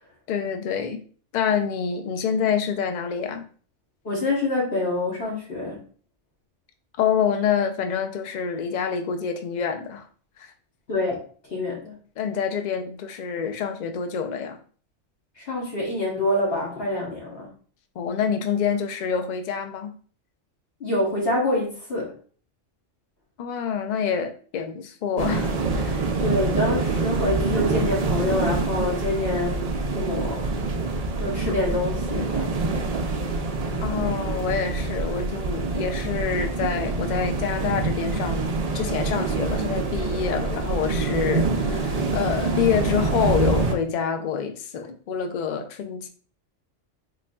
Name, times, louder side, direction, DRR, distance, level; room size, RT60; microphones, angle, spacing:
voice 1, 0.3-1.0 1.3-3.5 7.0-10.1 10.4-10.5 12.2-14.6 18.0-19.9 23.4-26.1 33.8-46.1, left 7 dB, 70° left, 0.4 m, -27 dB
voice 2, 4.0-5.8 10.9-11.2 11.5-12.0 15.4-17.5 20.8-22.1 26.2-29.6 29.9-30.4 31.2-32.6, left 2 dB, 55° left, 1.2 m, -26 dB
sound 1, 25.2-43.7, right 3 dB, 65° right, 0.3 m, -26 dB
4.0 x 3.3 x 2.2 m
omnidirectional pair, 1.3 m